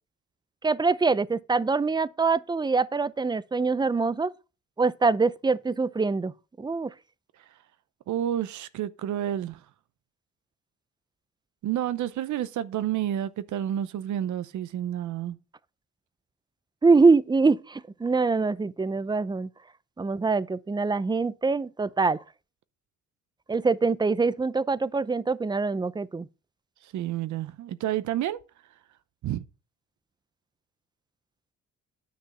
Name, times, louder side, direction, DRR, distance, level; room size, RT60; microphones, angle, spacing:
voice 1, 0.6-4.3 4.8-6.3 6.6-6.9 16.8-19.5 20.0-22.2 23.5-26.3, right 4 dB, 15° right, 0.5 m, -24 dB
voice 2, 8.1-9.6 11.6-15.4 26.9-28.4 29.2-29.4, right 11 dB, 75° right, 0.8 m, -29 dB
9.6 x 6.1 x 5.5 m
cardioid pair, 90°, 30 cm